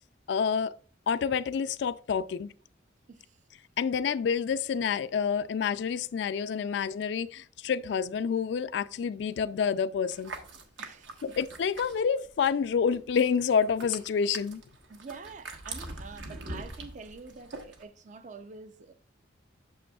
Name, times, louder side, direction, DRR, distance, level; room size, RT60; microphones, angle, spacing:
voice 1, 0.3-0.7 1.1-2.5 3.8-10.3 11.2-14.6, left 6 dB, 60° left, 0.3 m, -28 dB
sound 1, 10.1-12.6 12.9-17.8, right 2 dB, 70° right, 1.1 m, -43 dB
voice 2, 10.8-11.4 14.9-18.9, right 4 dB, 40° right, 0.5 m, -46 dB
8.4 x 6.8 x 2.3 m
head